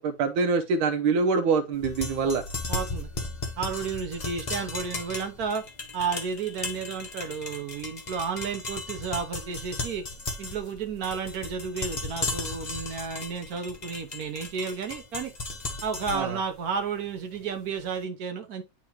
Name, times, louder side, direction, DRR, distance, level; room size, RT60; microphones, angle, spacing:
voice 1, 0.0-2.4 16.1-16.4, right 4 dB, 90° right, 1.5 m, -25 dB
sound 1, 1.8-17.8, left 3 dB, 35° left, 0.7 m, -36 dB
voice 2, 2.7-3.1 3.6-5.6 5.9-10.1 10.4-15.3 15.8-18.6, right 6 dB, 60° right, 1.2 m, -32 dB
8.9 x 3.7 x 2.9 m
omnidirectional pair, 2.2 m